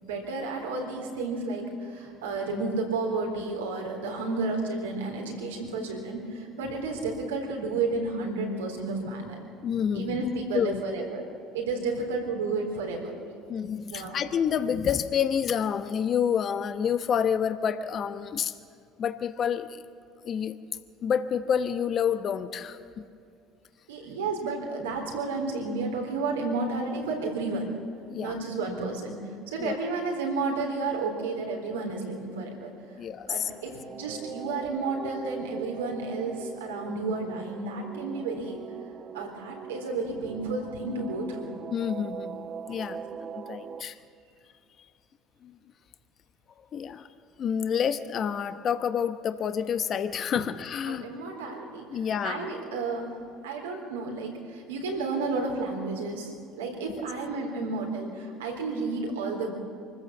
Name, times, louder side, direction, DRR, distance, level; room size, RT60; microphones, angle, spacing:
voice 1, 0.0-9.4 9.9-11.3 11.5-13.1 13.9-14.2 23.9-27.7 28.2-29.2 29.5-32.7 33.3-38.6 39.1-41.5 50.9-51.9 52.2-53.1 53.4-59.5, right 3 dB, 90° right, 1 dB, 3.8 m, -31 dB
voice 2, 9.6-10.3 10.5-10.8 13.5-18.5 19.0-19.8 20.2-20.6 21.0-23.0 28.1-28.4 29.6-29.7 33.0-33.5 41.7-43.0 43.3-44.0 45.4-45.5 46.6-47.1 47.4-51.1 51.9-52.5 56.9-57.0, left 8 dB, 50° left, 10 dB, 1.0 m, -28 dB
sound 1, 33.1-43.8, right 7 dB, 40° right, 0.9 m, -42 dB
24.5 x 14.5 x 7.3 m, 2.4 s
hypercardioid pair, 75°, 0 cm